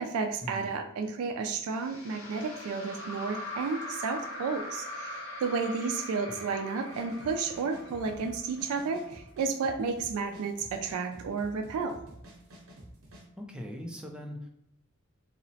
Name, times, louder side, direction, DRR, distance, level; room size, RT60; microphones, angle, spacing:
voice 1, 0.0-12.0, right 4 dB, 85° right, 8 dB, 0.3 m, -32 dB
sound 1, 1.7-9.0, left 1 dB, 70° left, 0.7 m, -41 dB
sound 2, 6.8-13.2, equal, 70° right, 0.8 m, -50 dB
voice 2, 13.4-14.5, equal, 5° right, 0 dB, 0.3 m, -40 dB
2.8 x 2.0 x 2.7 m, 0.79 s
head